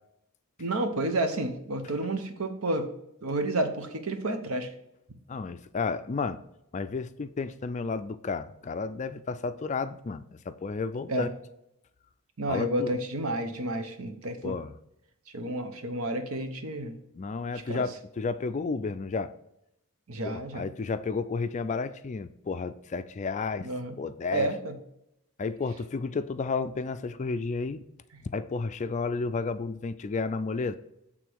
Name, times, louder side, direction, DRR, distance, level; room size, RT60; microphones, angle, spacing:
voice 1, 0.6-2.9 3.2-4.7 11.1-11.3 12.4-14.5 15.3-17.0 17.7-17.8 20.1-20.7 23.6-24.0 24.3-24.7, right 1 dB, 70° right, 7 dB, 0.9 m, -30 dB
voice 2, 5.3-6.4 6.7-11.3 12.5-12.9 14.4-14.7 17.1-19.3 20.2-24.5 25.4-27.8 28.3-30.8, left 4 dB, 30° left, 12 dB, 0.3 m, -32 dB
8.2 x 3.8 x 4.6 m, 0.82 s
head